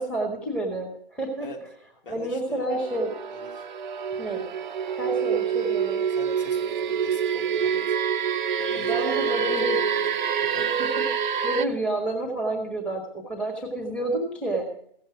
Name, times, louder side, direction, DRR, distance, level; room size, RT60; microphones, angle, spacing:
voice 1, 0.0-1.5 2.1-3.1 4.2-4.4 5.0-6.0 8.9-9.8 10.6-14.7, right 2 dB, 5° left, 0 dB, 1.2 m, -29 dB
voice 2, 2.0-2.7 3.3-3.7 6.1-8.0 8.6-10.2 10.5-10.6, left 2 dB, 55° left, 0 dB, 3.0 m, -43 dB
sound 1, 2.7-11.7, right 7 dB, 50° right, 0.6 m, -26 dB
16.0 x 7.3 x 4.9 m, 0.66 s
figure-of-eight pair, 135°, 30 cm